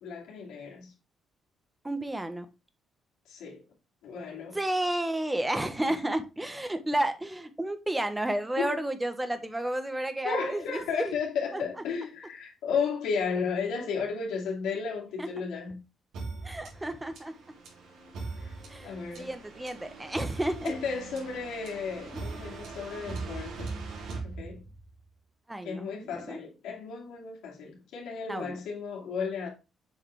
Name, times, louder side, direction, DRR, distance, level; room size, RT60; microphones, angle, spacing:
voice 1, 0.0-0.9 3.3-3.6 4.0-4.6 8.6-8.8 10.2-15.8 18.4-18.5 18.8-19.3 20.6-23.8 24.2-24.6 25.6-29.5, left 5 dB, 90° left, 2.6 m, -34 dB
voice 2, 1.8-2.5 4.5-11.1 11.5-11.6 15.2-15.3 16.4-17.3 18.7-20.7 25.5-26.4 28.3-28.6, right 1 dB, 10° right, 1.2 m, -31 dB
sound 1, 16.1-25.0, right 3 dB, 80° right, 3.4 m, -40 dB
7.6 x 4.9 x 3.3 m
cardioid pair, 90°, 0 cm